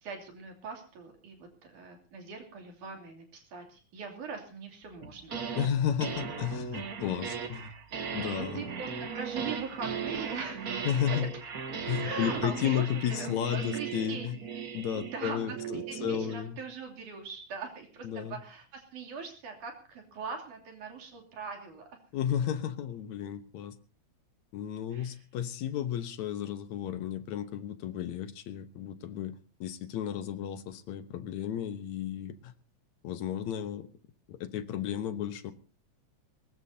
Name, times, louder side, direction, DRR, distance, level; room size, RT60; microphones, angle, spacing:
voice 1, 0.0-5.4 7.4-7.6 8.2-11.3 12.0-14.6 15.1-15.4 15.7-21.9 24.9-25.2, right 5 dB, 80° right, 3 dB, 4.4 m, -41 dB
sound 1, 5.0-5.7 6.0-16.4, right 6 dB, 55° right, 1.0 m, -37 dB
voice 2, 5.6-7.7 8.1-8.6 10.9-11.3 11.9-14.4 14.7-16.6 18.0-18.4 22.1-23.8 24.5-32.5 33.0-33.9 34.3-35.5, left 9 dB, 70° left, 11 dB, 2.3 m, -33 dB
21.5 x 20.0 x 2.8 m, 0.36 s
omnidirectional pair, 3.5 m